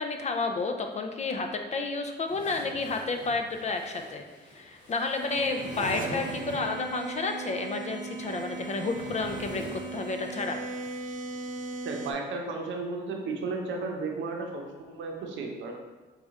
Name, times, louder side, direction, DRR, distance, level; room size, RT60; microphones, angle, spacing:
voice 1, 0.0-4.2 4.5-10.6, left 3 dB, 35° left, 5 dB, 0.5 m, -31 dB
sound 1, 2.3-7.0 8.0-10.4, equal, 65° left, 1.4 m, -44 dB
sound 2, 5.3-12.1, right 4 dB, 40° right, 0.6 m, -38 dB
voice 2, 11.8-15.7, right 3 dB, 70° right, 2 dB, 0.8 m, -34 dB
4.7 x 2.4 x 4.1 m, 1.2 s
cardioid pair, 90°, 20 cm